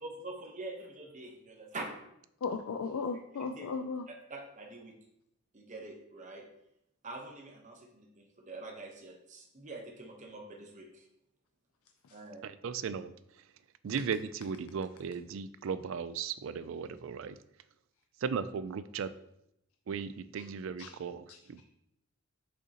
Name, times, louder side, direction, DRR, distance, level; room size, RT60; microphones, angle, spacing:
voice 1, 0.0-1.9 3.4-3.7 4.1-4.9 5.5-6.4 7.0-11.1 12.1-12.5 16.6-16.9, right 2 dB, 35° right, 2 dB, 1.0 m, -45 dB
voice 2, 2.4-4.1 12.0-12.2 20.4-20.5 20.8-20.9 21.3-21.6, left 4 dB, 75° left, 6 dB, 0.4 m, -36 dB
voice 3, 12.4-13.1 13.8-17.4 18.2-19.1 19.9-21.6, right 6 dB, 60° right, 13 dB, 0.3 m, -36 dB
6.4 x 5.4 x 2.9 m, 0.79 s
head